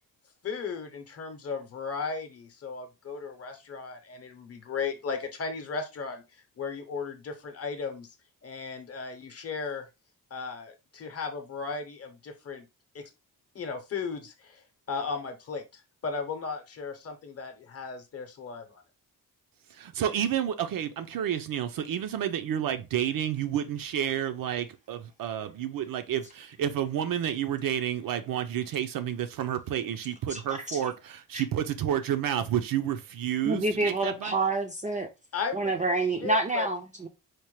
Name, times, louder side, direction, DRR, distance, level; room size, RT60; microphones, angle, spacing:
voice 1, 0.4-6.2 6.6-8.1 8.4-9.9 10.3-12.7 12.9-13.1 13.5-18.8 35.3-36.7, left 5 dB, 40° left, 0.7 m, -36 dB
voice 2, 19.7-34.4, right 10 dB, 70° right, 0.6 m, -30 dB
voice 3, 33.5-35.1 35.5-37.1, right 2 dB, 20° right, 0.4 m, -27 dB
4.4 x 2.1 x 3.1 m
wide cardioid pair, 150°, 35 cm